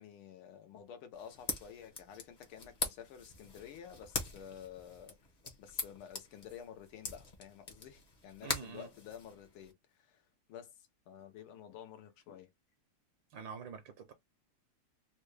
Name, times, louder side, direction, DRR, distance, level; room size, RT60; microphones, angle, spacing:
voice 1, 0.0-5.2 5.6-12.5, left 9 dB, 85° left, 1.7 m, -51 dB
sound 1, 1.1-9.7, left 3 dB, 35° left, 0.7 m, -43 dB
voice 2, 8.4-8.9 13.3-14.1, right 6 dB, 70° right, 1.4 m, -46 dB
4.2 x 2.2 x 3.2 m
omnidirectional pair, 2.3 m